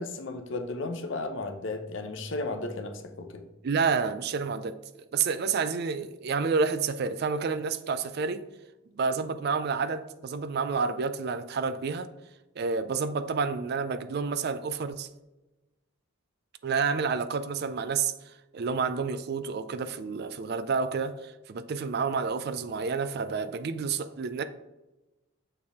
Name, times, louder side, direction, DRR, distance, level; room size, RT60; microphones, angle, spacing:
voice 1, 0.0-3.4, left 2 dB, 60° left, 0.7 m, -34 dB
voice 2, 3.6-4.8 5.1-8.4 8.9-12.1 12.6-15.1 16.6-18.1 18.5-24.4, right 5 dB, 50° right, 0.3 m, -29 dB
6.7 x 4.3 x 3.6 m
head